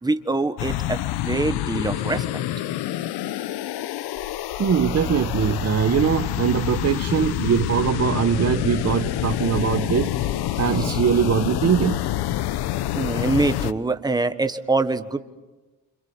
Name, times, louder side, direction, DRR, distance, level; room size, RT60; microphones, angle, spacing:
voice 1, 0.0-2.4 10.8-11.0 12.9-15.2, right 3 dB, 10° right, 9 dB, 1.3 m, -24 dB
sound 1, 0.6-13.7, left 13 dB, 85° left, 1.0 m, -27 dB
voice 2, 4.6-10.1 10.6-12.0, right 8 dB, 40° right, 10 dB, 1.6 m, -21 dB
28.0 x 26.5 x 7.3 m, 1.1 s
cardioid pair, 130°, 38 cm